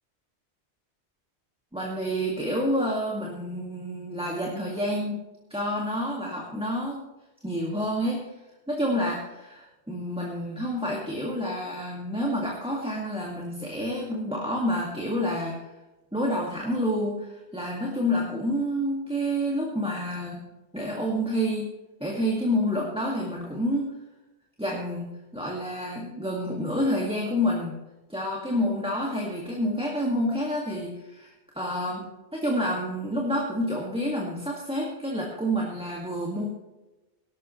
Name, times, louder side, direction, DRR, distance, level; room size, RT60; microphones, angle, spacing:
voice 1, 1.7-5.2 5.5-7.1 7.4-8.3 8.7-15.7 16.1-20.4 20.7-21.7 22.0-23.9 24.6-27.8 28.1-36.5, equal, 5° right, -3 dB, 2.0 m, -28 dB
18.5 x 12.5 x 3.2 m, 1.1 s
omnidirectional pair, 1.1 m